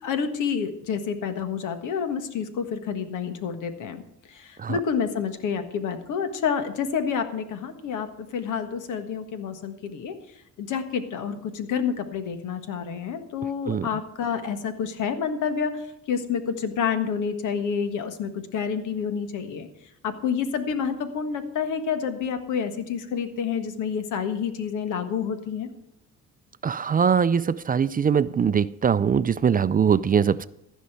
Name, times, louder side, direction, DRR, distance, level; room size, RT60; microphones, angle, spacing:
voice 1, 0.0-4.0 4.3-10.1 10.6-19.7 20.0-25.7, left 6 dB, 85° left, 9 dB, 1.5 m, -29 dB
voice 2, 26.6-30.5, right 7 dB, 30° right, 16 dB, 0.4 m, -22 dB
14.5 x 5.5 x 8.1 m, 0.83 s
cardioid pair, 90°, 30 cm